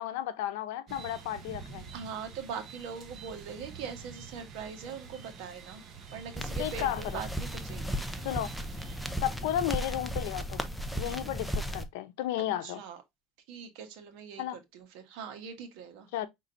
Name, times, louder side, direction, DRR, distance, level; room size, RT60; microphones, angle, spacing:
voice 1, 0.0-1.9 6.6-7.2 8.2-8.5 9.2-12.8 14.4-14.6 16.1-16.3, left 12 dB, 85° left, 0.7 m, -33 dB
sound 1, 0.9-9.1, right 5 dB, 40° right, 1.1 m, -48 dB
voice 2, 1.9-5.8 6.1-8.0 12.6-13.0 13.5-16.1, right 6 dB, 70° right, 1.3 m, -42 dB
sound 2, 6.4-11.9, equal, ahead, 0.6 m, -35 dB
5.4 x 3.7 x 2.6 m
cardioid pair, 140°, 0 cm